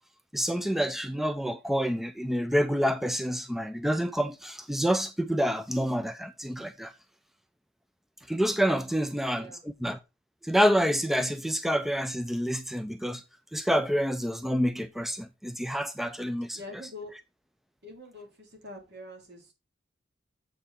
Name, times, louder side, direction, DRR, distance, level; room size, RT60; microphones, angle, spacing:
voice 1, 0.3-6.9 8.3-9.5 9.8-10.0 10.4-13.2 13.5-16.6, equal, ahead, 0.3 m, -28 dB
voice 2, 8.8-9.6 16.5-17.1 17.8-19.5, left 2 dB, 55° right, 3.2 m, -45 dB
7.7 x 5.6 x 4.1 m
head